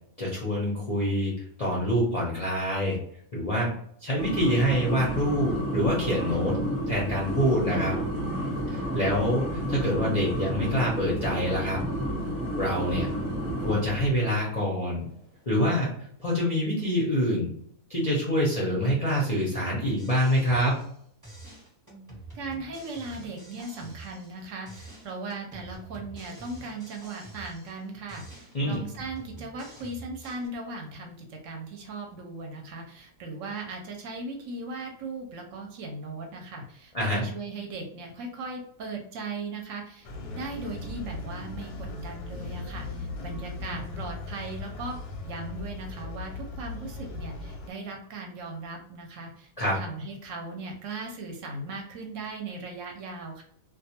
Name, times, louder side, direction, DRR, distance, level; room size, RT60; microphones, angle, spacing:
voice 1, 0.2-1.3 1.6-3.0 3.3-3.7 4.0-6.6 6.9-8.0 8.7-11.8 12.6-13.1 13.6-15.1 15.5-15.9 16.2-17.5 17.9-20.8 28.5-28.8 36.9-37.2 49.6-49.8, equal, 45° left, -6 dB, 0.4 m, -26 dB
sound 1, 4.2-14.2, right 1 dB, 35° right, 0.5 m, -31 dB
sound 2, 20.0-21.0 21.2-24.4 24.7-27.8 28.1-30.5, right 2 dB, 15° right, 0.9 m, -47 dB
voice 2, 22.3-40.1 40.3-45.0 45.2-53.4, right 3 dB, 70° right, 1 dB, 0.9 m, -38 dB
sound 3, 40.0-47.7, left 2 dB, 90° left, 1.1 m, -38 dB
2.3 x 2.3 x 2.7 m, 0.67 s
omnidirectional pair, 1.5 m